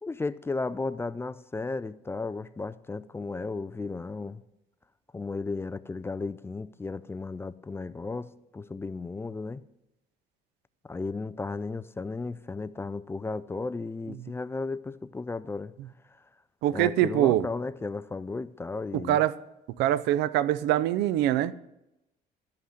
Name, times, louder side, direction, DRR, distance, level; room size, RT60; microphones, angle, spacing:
voice 1, 0.0-4.4 5.1-9.6 10.9-15.7 16.7-19.2, left 3 dB, 15° left, 0.3 m, -34 dB
voice 2, 16.6-17.5 18.9-19.3 19.8-21.5, right 13 dB, 90° right, 0.5 m, -24 dB
13.0 x 5.7 x 6.5 m
cardioid pair, 110°, 17 cm